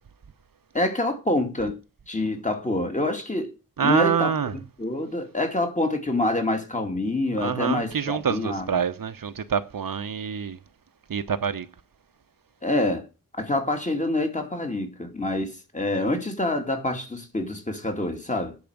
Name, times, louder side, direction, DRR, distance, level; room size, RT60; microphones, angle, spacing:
voice 1, 0.7-1.8 2.1-3.6 3.8-8.7 12.6-13.1 13.4-18.6, left 2 dB, 20° left, 2.5 m, -26 dB
voice 2, 3.8-4.5 7.4-10.6 11.1-11.7, right 7 dB, 80° right, 0.9 m, -26 dB
10.5 x 4.8 x 7.9 m
wide cardioid pair, 85°, 33 cm